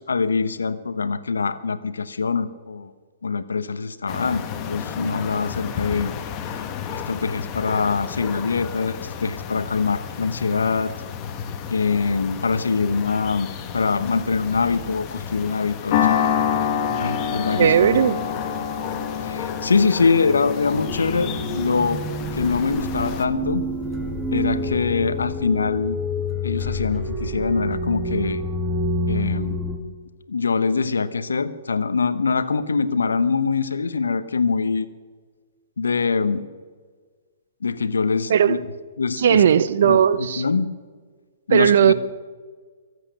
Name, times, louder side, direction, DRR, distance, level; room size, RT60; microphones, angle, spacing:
voice 1, 0.0-2.9 3.2-6.1 6.9-10.9 11.7-13.5 13.7-16.2 17.0-17.7 19.2-22.0 22.3-23.6 24.3-26.0 26.4-28.4 29.1-29.6 30.3-34.9 35.8-36.5 37.6-38.6 39.0-39.4 39.8-40.7 41.5-41.9, left 4 dB, 80° left, 1.0 m, -23 dB
sound 1, 4.1-23.3, left 7 dB, 30° left, 1.5 m, -34 dB
sound 2, 15.9-24.4, left 8 dB, 50° left, 1.6 m, -27 dB
voice 2, 17.6-18.2 38.3-38.6 39.2-40.4 41.5-41.9, right 9 dB, 60° right, 0.8 m, -17 dB
sound 3, 20.9-29.8, left 1 dB, 5° right, 2.1 m, -28 dB
24.0 x 8.3 x 6.7 m
hypercardioid pair, 125°, 0 cm